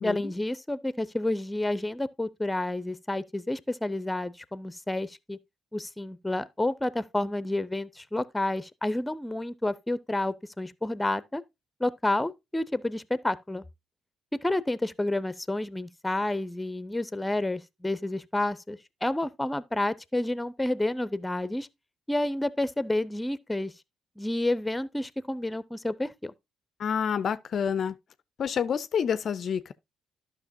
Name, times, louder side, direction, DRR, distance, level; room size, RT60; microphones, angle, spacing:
voice 1, 0.0-5.4 5.7-11.4 11.8-13.6 14.4-21.7 22.1-23.7 24.2-26.3, left 1 dB, 15° left, 0.6 m, -30 dB
voice 2, 26.8-28.0 28.4-29.7, left 7 dB, 55° left, 0.4 m, -28 dB
12.5 x 5.7 x 2.6 m
hypercardioid pair, 45°, 0 cm